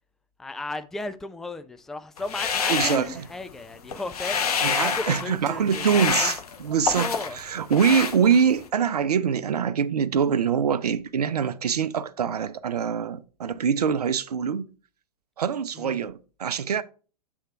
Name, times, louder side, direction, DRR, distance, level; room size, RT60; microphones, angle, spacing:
voice 1, 0.4-6.3 7.0-7.4 15.7-16.0, left 2 dB, ahead, 0.3 m, -35 dB
sound 1, 2.2-3.6 3.9-5.3 5.7-7.4 7.7-8.7, left 6 dB, 75° left, 0.9 m, -27 dB
voice 2, 2.7-3.3 4.6-14.7 15.4-16.8, right 7 dB, 80° right, 0.6 m, -24 dB
sound 2, 4.3-4.5 5.1-6.6, right 9 dB, 35° right, 0.7 m, -43 dB
7.9 x 3.6 x 4.5 m
hypercardioid pair, 110°, 20 cm